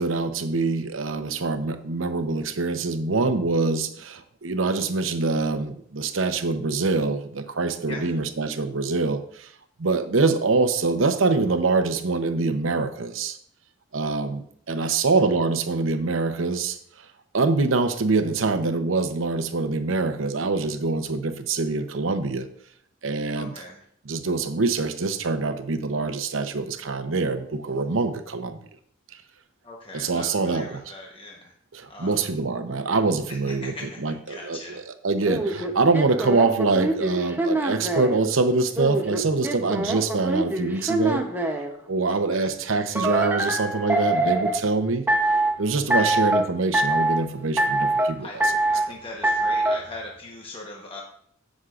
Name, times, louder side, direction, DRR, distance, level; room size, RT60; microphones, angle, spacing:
voice 1, 0.0-9.5 9.8-13.4 13.9-16.8 17.3-22.5 23.0-23.5 24.1-28.6 29.9-30.8 31.7-33.7 34.0-41.2 41.9-45.0 45.6-48.3, right 3 dB, 80° right, 9 dB, 0.8 m, -24 dB
voice 2, 7.8-8.1 14.7-15.1 23.3-23.9 29.6-31.5 31.9-32.4 33.3-34.8 42.1-42.5 45.8-46.2 48.2-51.0, left 2 dB, 30° left, -1 dB, 1.1 m, -40 dB
sound 1, 35.3-38.2 38.8-41.7 43.0-44.6 45.1-45.5 45.9-46.4 46.7-47.2 47.6-48.1 48.4-48.9 49.2-49.8, right 2 dB, 10° right, 0.8 m, -24 dB
16.0 x 6.3 x 2.5 m, 0.65 s
head